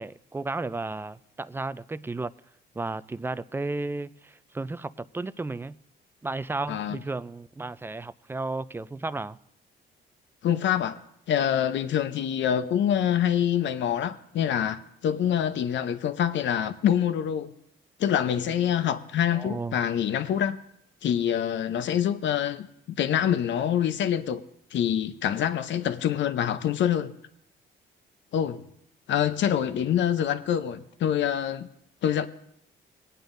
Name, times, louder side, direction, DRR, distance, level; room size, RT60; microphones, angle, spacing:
voice 1, 0.0-2.3 2.8-5.7 6.2-9.4 19.3-19.8, right 3 dB, 10° right, 0.3 m, -33 dB
voice 2, 6.7-7.0 10.4-11.0 11.3-17.5 18.0-20.6 21.0-24.4 24.7-27.1 28.3-28.7 29.1-31.7 32.0-32.3, left 9 dB, 65° left, 0.7 m, -26 dB
22.5 x 9.1 x 2.6 m
cardioid pair, 90°, 20 cm